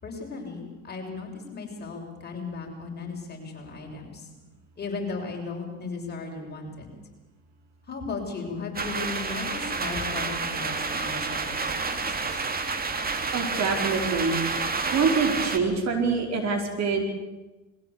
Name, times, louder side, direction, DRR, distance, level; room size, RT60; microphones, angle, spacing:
voice 1, 0.0-4.3 4.8-6.9 7.9-12.4, left 4 dB, 30° left, 0 dB, 6.7 m, -36 dB
sound 1, 8.7-15.6, right 4 dB, 25° right, 2.3 m, -29 dB
voice 2, 13.1-14.6 14.9-17.0, right 4 dB, 50° right, 3 dB, 4.8 m, -25 dB
22.0 x 16.0 x 8.4 m, 1.1 s
supercardioid pair, 95°, 34 cm